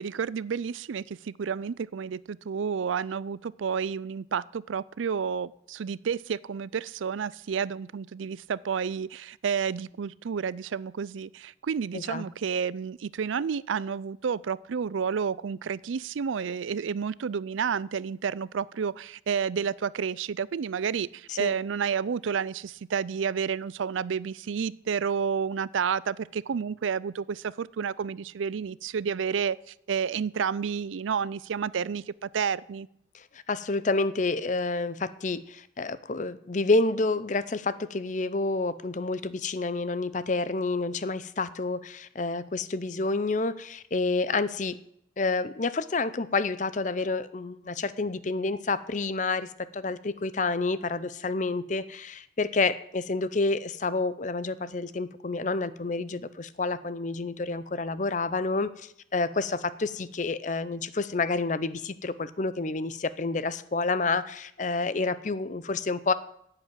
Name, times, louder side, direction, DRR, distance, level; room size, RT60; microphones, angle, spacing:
voice 1, 0.0-29.6 29.9-32.9, right 6 dB, 85° right, 20 dB, 0.4 m, -30 dB
voice 2, 11.9-12.2 21.3-21.5 33.1-44.8 45.2-66.1, left 3 dB, 40° left, 15 dB, 0.6 m, -29 dB
10.5 x 7.9 x 9.1 m, 0.74 s
head